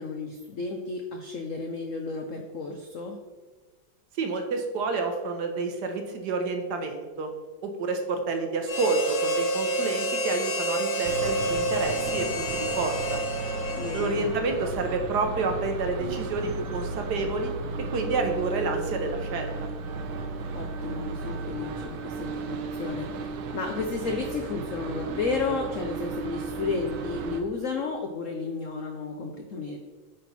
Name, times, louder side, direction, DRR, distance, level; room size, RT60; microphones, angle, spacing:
voice 1, 0.0-3.2 13.7-14.2 20.5-23.1 23.5-29.8, left 4 dB, 80° left, 3 dB, 0.7 m, -32 dB
voice 2, 4.2-7.3 7.6-13.2 13.9-17.5 17.9-19.5, right 3 dB, 65° right, 5 dB, 1.2 m, -29 dB
Harmonica, 8.7-14.5, right 1 dB, 65° left, 1.4 m, -29 dB
sound 1, 11.0-27.4, right 3 dB, 80° right, 1.5 m, -34 dB
9.0 x 4.2 x 4.1 m, 1.3 s
omnidirectional pair, 2.2 m